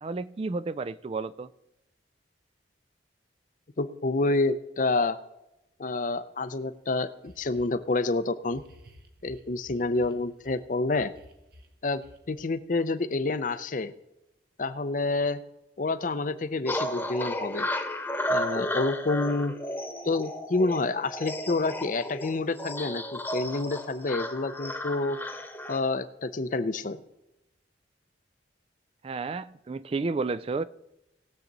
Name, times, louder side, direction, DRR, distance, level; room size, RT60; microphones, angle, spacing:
voice 1, 0.0-1.5 29.0-30.6, right 3 dB, 30° right, 16 dB, 0.3 m, -31 dB
voice 2, 3.8-5.2 5.8-8.6 9.2-11.1 11.8-12.0 12.3-13.9 14.6-15.4 15.8-17.7 18.3-19.5 20.0-25.2 25.7-27.0, left 3 dB, 45° left, 13 dB, 0.6 m, -28 dB
sound 1, 6.6-6.7 7.2-7.8 8.4-10.6 10.9-12.4, equal, 55° right, 1.1 m, -53 dB
sound 2, 16.7-25.8, left 1 dB, 10° left, 1.1 m, -33 dB
19.0 x 7.4 x 4.0 m, 0.91 s
head